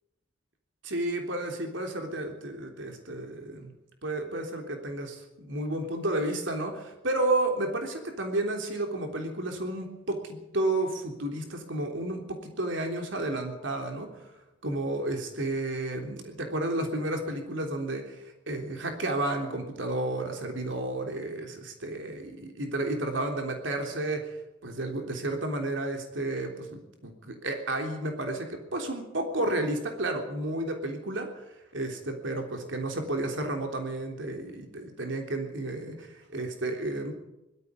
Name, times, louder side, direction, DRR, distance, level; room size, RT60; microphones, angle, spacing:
voice 1, 0.8-3.7 4.0-14.3 14.6-24.4 24.6-31.4 31.7-37.1, right 2 dB, 80° right, 4 dB, 3.5 m, -32 dB
20.5 x 13.5 x 9.6 m, 0.93 s
head